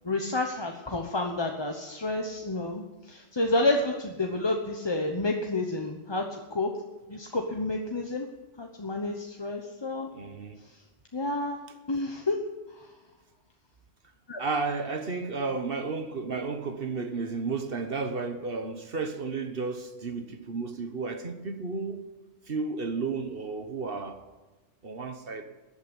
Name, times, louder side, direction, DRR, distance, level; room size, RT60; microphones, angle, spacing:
voice 1, 0.0-6.7 7.1-8.3 8.6-10.1 10.6-10.8 11.1-11.6 11.9-12.4 12.7-12.9 14.3-14.4, left 2 dB, 20° left, 1.0 m, -30 dB
voice 2, 10.1-10.6 14.4-22.0 22.5-24.2 24.8-25.4, right 4 dB, 45° right, 1.4 m, -32 dB
14.5 x 8.6 x 9.9 m
omnidirectional pair, 1.3 m